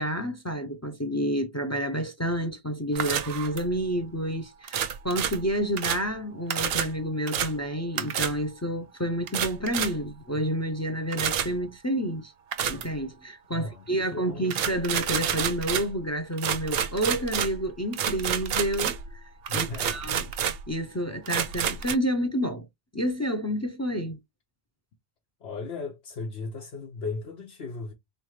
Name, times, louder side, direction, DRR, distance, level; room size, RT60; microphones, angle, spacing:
voice 1, 0.0-12.3 12.7-19.2 19.5-20.3 20.7-22.7 22.9-24.2, equal, 25° left, 0.4 m, -29 dB
sound 1, 2.9-3.8 4.6-6.1 6.5-6.9 7.3-7.5 8.0-8.4 9.3-10.1 11.1-11.6 12.5-13.0 14.5-16.0 16.4-19.2 19.4-20.7 21.3-21.9, right 8 dB, 70° right, 0.8 m, -29 dB
voice 2, 13.5-14.5 19.5-20.2 25.4-27.9, left 4 dB, 85° left, 1.2 m, -37 dB
3.6 x 3.2 x 3.2 m
omnidirectional pair, 1.1 m